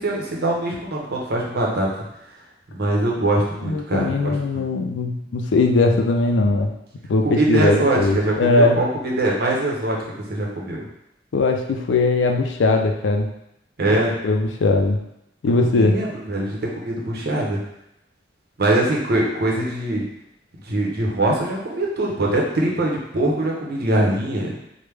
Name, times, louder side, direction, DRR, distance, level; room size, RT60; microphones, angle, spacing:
voice 1, 0.0-1.9 2.7-4.6 7.2-10.0 10.3-10.8 13.8-14.1 15.5-17.6 18.6-20.1 20.6-24.5, right 1 dB, 60° right, -2 dB, 0.7 m, -22 dB
voice 2, 3.6-6.7 7.1-8.8 11.3-13.3 14.2-15.0 15.4-16.0, left 3 dB, 85° left, 3 dB, 0.4 m, -19 dB
3.2 x 2.1 x 3.3 m, 0.81 s
head